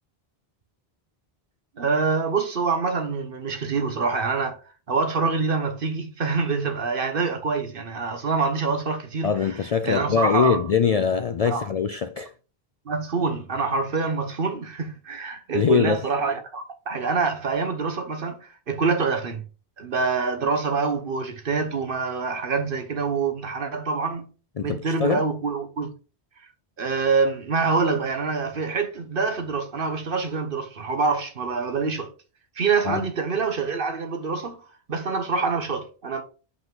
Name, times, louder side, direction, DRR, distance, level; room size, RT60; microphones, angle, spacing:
voice 1, 1.8-4.6 4.9-9.6 9.8-10.6 11.5-11.6 12.9-19.4 19.8-24.3 24.6-25.9 26.8-32.1 32.6-34.6 34.9-36.2, right 4 dB, 60° right, 1.2 m, -26 dB
voice 2, 9.2-12.3 15.5-16.0 24.6-25.2 32.8-33.0, left 6 dB, 55° left, 0.4 m, -23 dB
5.7 x 5.5 x 3.7 m
omnidirectional pair, 1.1 m